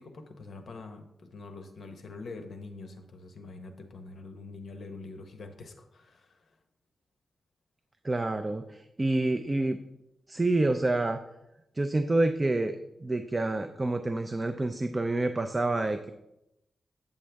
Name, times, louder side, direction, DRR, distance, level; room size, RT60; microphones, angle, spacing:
voice 1, 0.0-6.3, left 3 dB, 60° left, 6 dB, 0.9 m, -45 dB
voice 2, 8.0-9.8 10.3-11.2 11.8-16.1, right 2 dB, 20° right, 8 dB, 0.4 m, -28 dB
8.6 x 7.3 x 3.4 m, 0.86 s
wide cardioid pair, 155°, 0 cm